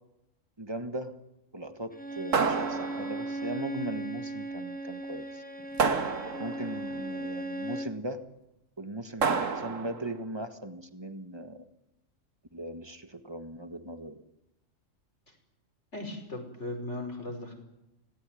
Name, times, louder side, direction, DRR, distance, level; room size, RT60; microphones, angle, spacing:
voice 1, 0.6-1.2 1.5-5.4 5.7-5.9 6.4-8.3 8.8-11.6 12.5-14.2, right 1 dB, 20° right, 8 dB, 1.5 m, -39 dB
Bowed string instrument, 1.9-8.0, right 2 dB, 5° left, 1.1 m, -37 dB
sound 1, 2.3-3.4 5.8-6.8 9.2-10.1, right 5 dB, 75° right, 1.8 m, -29 dB
voice 2, 15.9-17.5, left 2 dB, 60° left, 4 dB, 5.7 m, -37 dB
26.0 x 18.5 x 9.2 m, 0.91 s
omnidirectional pair, 1.4 m